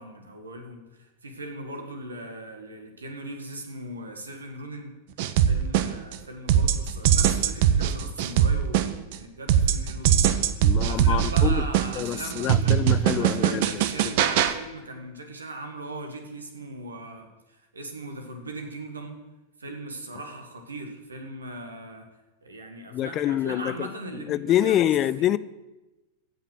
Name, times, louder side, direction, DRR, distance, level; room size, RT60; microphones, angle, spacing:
voice 1, 0.0-4.9 5.5-12.9 13.2-19.2 19.6-22.1 22.4-25.3, right 2 dB, 75° right, 1.7 m, -39 dB
sound 1, 5.2-6.2 6.5-9.2 9.5-14.5, right 9 dB, 50° right, 0.7 m, -21 dB
voice 2, 10.6-11.7 12.0-13.7 14.0-14.1 22.9-25.4, left 12 dB, 35° left, 0.4 m, -26 dB
16.0 x 5.7 x 6.3 m
figure-of-eight pair, 90°, 0 cm